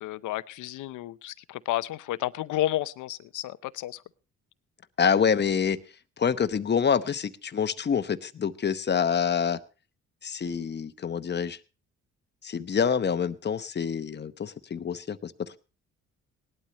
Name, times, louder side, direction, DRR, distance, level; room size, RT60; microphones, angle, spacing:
voice 1, 0.0-4.0, left 14 dB, 85° left, 15 dB, 0.7 m, -31 dB
voice 2, 5.0-5.8 6.2-9.6 10.2-11.6 12.4-15.3, left 7 dB, 35° left, 12 dB, 0.9 m, -26 dB
18.5 x 12.0 x 3.0 m, 0.33 s
cardioid pair, 90°, 30 cm